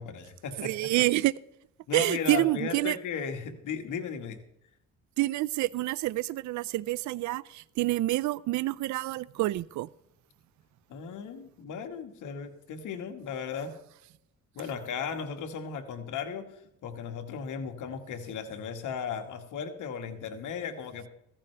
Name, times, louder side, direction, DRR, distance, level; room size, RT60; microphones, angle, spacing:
voice 1, 0.0-0.8 1.9-4.4 10.9-13.7 14.5-21.1, left 6 dB, 80° left, 1.8 m, -36 dB
voice 2, 0.6-1.3 1.9-3.0 5.2-9.9, right 18 dB, 70° right, 0.5 m, -28 dB
15.5 x 14.5 x 3.4 m
cardioid pair, 90°, 30 cm